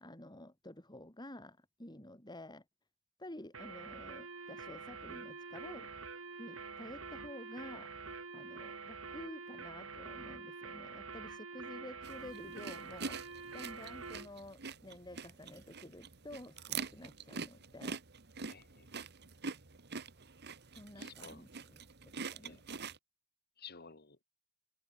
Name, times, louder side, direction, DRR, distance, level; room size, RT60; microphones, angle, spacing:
voice 1, 0.0-2.6 3.2-5.9 6.4-7.9 8.3-18.0 20.8-21.8 22.3-22.6, left 1 dB, 20° left, 5.1 m, -51 dB
sound 1, 3.5-14.3, right 4 dB, 80° right, 3.8 m, -47 dB
sound 2, 12.0-23.0, right 5 dB, 55° right, 1.7 m, -45 dB
voice 2, 18.5-18.9 21.0-21.4 22.4-22.6 23.6-24.2, left 6 dB, 50° left, 3.2 m, -53 dB
head